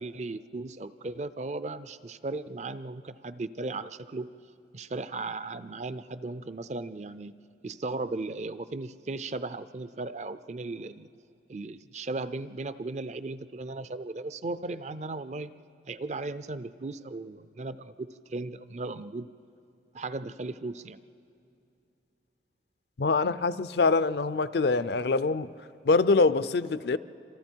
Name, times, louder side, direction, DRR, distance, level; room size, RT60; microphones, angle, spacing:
voice 1, 0.0-4.3 4.7-7.3 7.6-11.1 11.5-15.5 15.9-19.3 19.9-21.0, right 3 dB, 40° right, 0.4 m, -36 dB
voice 2, 23.0-25.5 25.8-27.0, left 3 dB, 60° left, 0.5 m, -24 dB
28.0 x 26.5 x 4.6 m
head